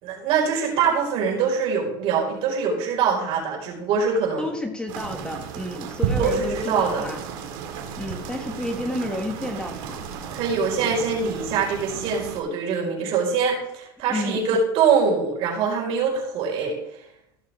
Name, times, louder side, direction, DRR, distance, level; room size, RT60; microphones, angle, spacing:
voice 1, 0.0-4.5 6.2-7.1 10.3-16.8, right 5 dB, 55° right, -2 dB, 4.7 m, -23 dB
voice 2, 4.4-7.2 8.0-10.0 14.1-14.6, left 1 dB, 10° left, 4 dB, 1.2 m, -31 dB
sound 1, 4.9-12.4, right 7 dB, 75° right, 2.1 m, -33 dB
15.5 x 6.7 x 3.5 m, 0.81 s
supercardioid pair, 115°, 11 cm